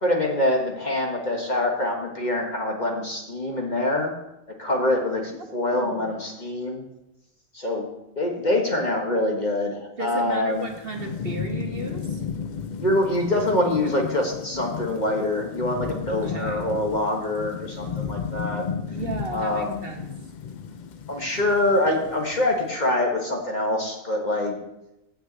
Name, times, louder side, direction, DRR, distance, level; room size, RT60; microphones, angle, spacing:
voice 1, 0.0-4.1 4.6-6.8 7.5-7.9 8.1-10.7 12.8-18.6 19.3-19.9 21.1-24.6, left 1 dB, 35° left, 1 dB, 1.4 m, -25 dB
voice 2, 5.3-6.1 10.0-12.2 16.1-16.6 18.9-20.0, right 3 dB, 45° right, 3 dB, 1.2 m, -35 dB
Thunderstorm / Rain, 10.5-22.8, left 6 dB, 70° left, 0.4 m, -34 dB
7.5 x 6.1 x 7.9 m, 0.89 s
omnidirectional pair, 1.4 m